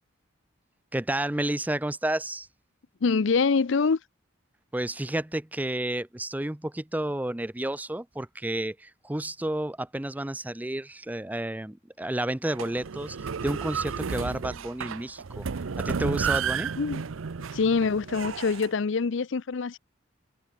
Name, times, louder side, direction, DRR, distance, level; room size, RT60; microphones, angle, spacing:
voice 1, 0.9-2.5 4.7-13.2 13.4-15.5 15.8-16.7, right 1 dB, 10° right, 0.5 m, -31 dB
voice 2, 3.0-4.0 16.8-17.1 17.5-19.8, left 4 dB, 70° left, 0.5 m, -25 dB
sound 1, 12.5-18.7, right 6 dB, 85° right, 0.6 m, -32 dB
head